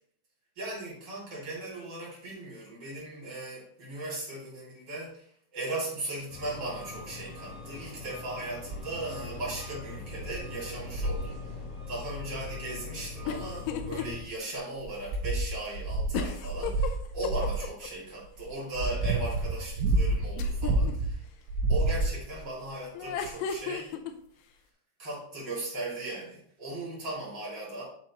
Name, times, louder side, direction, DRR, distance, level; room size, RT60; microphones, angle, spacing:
voice 1, 0.6-5.3 5.5-11.4 11.9-21.2 21.7-24.0 25.0-27.8, right 2 dB, 35° right, -6 dB, 2.0 m, -38 dB
sound 1, 6.3-14.2, left 3 dB, 50° left, 3.6 m, -41 dB
sound 2, 8.7-9.0 9.6-9.7 10.2-10.4 10.9-11.3 12.7-12.8 13.6-14.3 14.8-17.7 18.4-21.1 21.5-22.4 23.3-23.4, right 2 dB, 85° right, 3.0 m, -29 dB
sound 3, 13.3-14.1 14.5-14.6 16.1-17.9 20.4-20.9 22.9-24.1, left 7 dB, 85° left, 2.4 m, -34 dB
10.5 x 4.4 x 2.9 m, 0.66 s
omnidirectional pair, 5.3 m